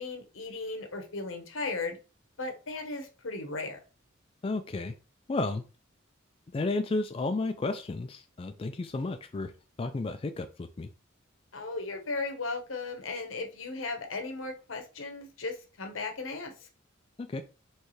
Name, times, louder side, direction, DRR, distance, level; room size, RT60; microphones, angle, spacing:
voice 1, 0.0-2.0 2.4-3.8 11.5-16.7, left 3 dB, 80° left, 5 dB, 1.0 m, -36 dB
voice 2, 4.4-4.9 5.3-5.6 6.5-9.5 9.8-10.9 17.2-17.4, left 3 dB, 30° left, 7 dB, 0.3 m, -32 dB
4.6 x 3.2 x 3.1 m, 0.32 s
head